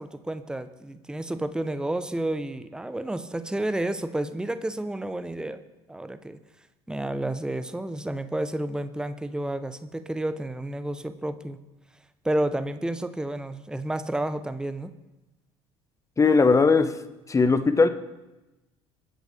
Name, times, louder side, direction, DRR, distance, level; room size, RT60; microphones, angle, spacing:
voice 1, 0.0-5.6 5.9-6.4 6.9-11.6 12.2-14.9, right 1 dB, 5° right, 12 dB, 0.9 m, -30 dB
voice 2, 16.2-17.0 17.3-17.9, left 4 dB, 20° left, 12 dB, 1.1 m, -19 dB
22.5 x 10.0 x 3.4 m, 1.0 s
figure-of-eight pair, 60°, 15 cm